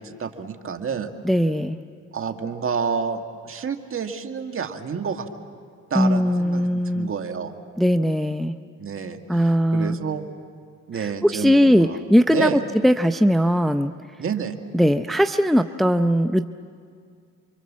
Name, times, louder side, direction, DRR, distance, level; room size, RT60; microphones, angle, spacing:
voice 1, 0.0-1.1 2.1-5.3 5.9-7.6 8.8-10.3 10.9-12.0 12.3-12.6 14.2-14.6, right 6 dB, 45° right, 6 dB, 1.9 m, -29 dB
voice 2, 1.2-1.8 5.9-7.1 7.8-8.5 9.3-10.0 10.9-13.9 14.7-16.5, equal, ahead, 8 dB, 0.6 m, -19 dB
29.5 x 24.0 x 7.4 m, 2.2 s
cardioid pair, 90°, 30 cm